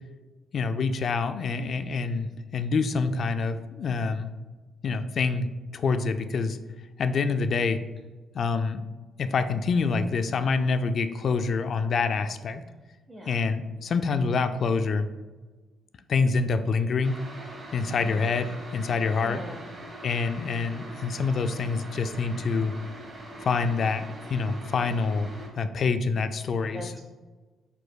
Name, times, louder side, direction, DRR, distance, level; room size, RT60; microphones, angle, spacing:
voice 1, 0.5-4.3 4.8-6.6 7.0-7.8 8.3-8.8 9.2-12.6 13.3-15.1 16.1-17.2 17.7-19.4 20.0-22.7 23.4-25.3 25.6-27.0, left 4 dB, 55° left, 10 dB, 0.3 m, -26 dB
voice 2, 13.1-13.5 17.9-18.4 18.9-19.7 26.7-27.0, equal, 10° right, 0 dB, 0.5 m, -42 dB
sound 1, 17.0-25.5, right 1 dB, 30° right, 1.1 m, -43 dB
4.7 x 4.1 x 2.3 m, 1.3 s
cardioid pair, 90°, 0 cm